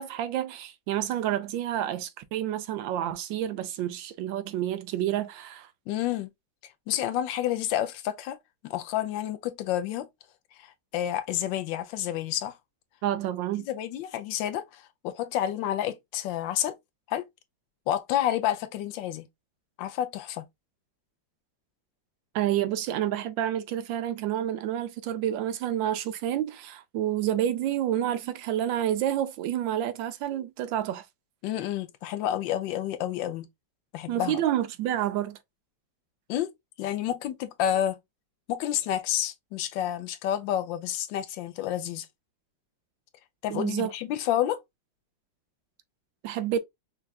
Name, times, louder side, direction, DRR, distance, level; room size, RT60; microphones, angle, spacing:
voice 1, 0.0-5.7 13.0-13.7 22.3-31.0 34.1-35.4 43.5-43.9 46.2-46.6, right 11 dB, 85° right, 1.3 m, -29 dB
voice 2, 5.9-6.3 6.9-8.4 8.6-10.1 10.6-12.6 13.7-16.7 17.1-17.2 17.9-19.3 19.8-20.4 31.4-33.5 33.9-34.4 36.3-36.5 36.8-38.0 38.5-42.1 43.4-44.6, left 11 dB, 85° left, 1.3 m, -29 dB
5.5 x 2.4 x 2.3 m
omnidirectional pair, 2.0 m